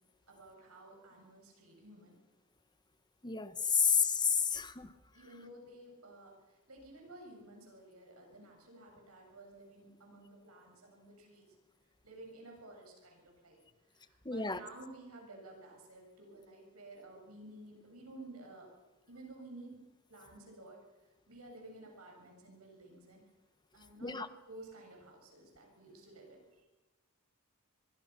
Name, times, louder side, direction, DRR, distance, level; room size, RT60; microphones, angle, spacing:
voice 1, 0.3-2.2 5.1-11.6 12.0-18.7 19.1-19.8 20.1-23.2 23.7-24.2 24.5-26.7, right 2 dB, 85° right, 1 dB, 7.5 m, -53 dB
voice 2, 3.2-4.9 14.2-14.6 24.0-24.3, left 6 dB, 20° left, 12 dB, 1.1 m, -30 dB
24.0 x 23.0 x 6.0 m, 1.1 s
head